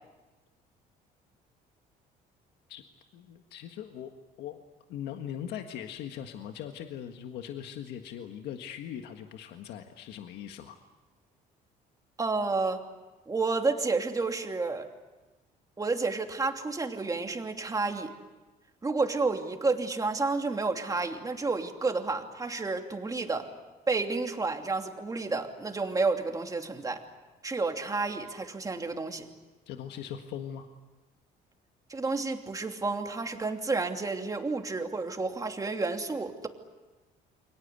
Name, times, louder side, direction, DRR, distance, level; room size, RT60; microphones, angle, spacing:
voice 1, 3.1-4.1 4.4-4.6 4.9-10.8 29.7-30.7, left 9 dB, 80° left, 5 dB, 1.7 m, -40 dB
voice 2, 12.2-12.8 13.3-14.9 15.8-18.1 18.8-23.5 23.9-27.0 27.4-29.3 31.9-36.5, right 3 dB, 20° right, 4 dB, 2.9 m, -30 dB
29.0 x 24.0 x 8.3 m, 1.2 s
cardioid pair, 110°, 17 cm